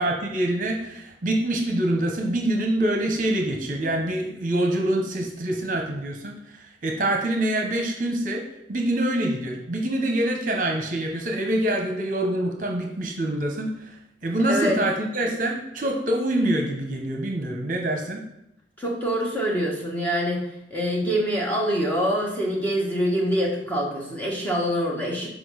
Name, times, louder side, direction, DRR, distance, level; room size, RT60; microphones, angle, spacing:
voice 1, 0.0-8.4 8.7-14.0 14.2-18.2, right 1 dB, 45° right, 2 dB, 1.0 m, -25 dB
voice 2, 14.5-14.8 18.8-25.3, equal, 10° left, -3 dB, 1.4 m, -25 dB
6.1 x 5.1 x 6.3 m, 0.82 s
head